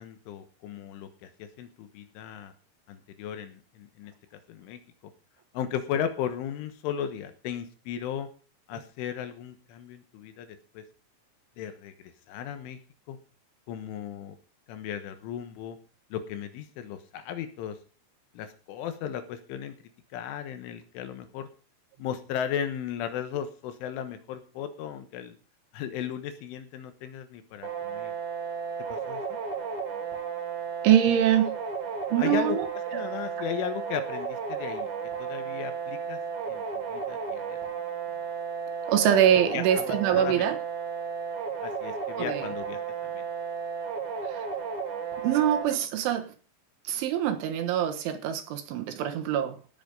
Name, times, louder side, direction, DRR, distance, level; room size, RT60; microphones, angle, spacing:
voice 1, 0.0-2.5 2.9-4.1 4.5-4.8 5.5-8.3 8.7-10.9 11.6-12.8 13.1-13.2 13.7-14.4 14.7-15.8 16.1-17.8 18.4-19.8 20.1-21.5 22.0-25.4 25.7-28.1 28.9-29.4 32.2-32.6 32.9-34.9 35.2-36.2 36.5-36.6 36.9-37.6 39.5-40.5 41.6-43.2, left 9 dB, 75° left, 9 dB, 3.5 m, -36 dB
sound 1, 27.6-45.6, right 6 dB, 45° right, 3.4 m, -34 dB
voice 2, 30.8-31.6 32.1-32.7 32.9-33.0 38.9-40.6 42.2-42.5 44.2-44.5 45.2-46.3 46.9-49.6, right 10 dB, 75° right, 8 dB, 3.6 m, -24 dB
17.5 x 7.9 x 5.4 m, 0.37 s
omnidirectional pair, 6.0 m